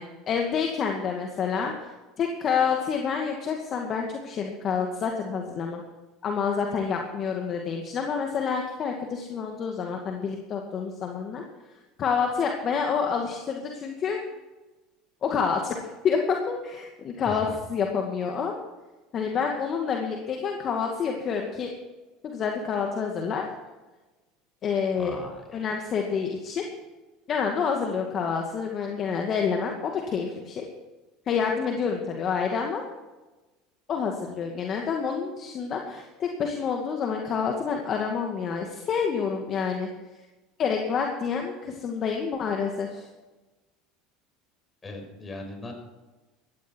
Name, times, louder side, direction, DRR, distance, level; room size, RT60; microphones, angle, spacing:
voice 1, 0.0-1.9 2.2-5.8 6.2-11.4 12.0-14.2 15.2-15.8 16.0-18.5 19.1-21.7 22.2-23.4 24.6-25.1 25.5-26.6 27.3-30.7 31.3-32.8 33.9-39.9 40.6-43.1, left 6 dB, 45° left, 2 dB, 2.2 m, -28 dB
voice 2, 17.2-17.6 25.0-25.6 44.8-45.7, left 2 dB, 25° left, 3 dB, 5.7 m, -39 dB
16.5 x 13.0 x 4.6 m, 1.2 s
hypercardioid pair, 85°, 0 cm